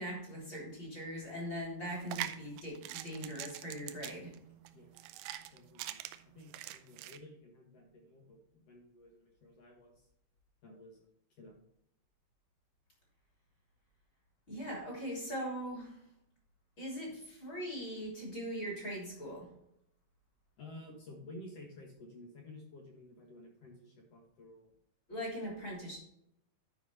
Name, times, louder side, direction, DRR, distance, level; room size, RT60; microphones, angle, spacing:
voice 1, 0.0-4.3 14.5-16.0 16.8-19.5 25.1-26.0, equal, 30° left, -3 dB, 3.4 m, -41 dB
sound 1, 1.9-7.2, right 13 dB, 85° right, 2.0 m, -43 dB
voice 2, 5.5-6.0 6.3-10.0 10.6-11.1 11.4-11.6 20.6-24.7, left 1 dB, 55° left, 0 dB, 1.9 m, -53 dB
11.0 x 5.1 x 4.2 m, 0.76 s
omnidirectional pair, 4.5 m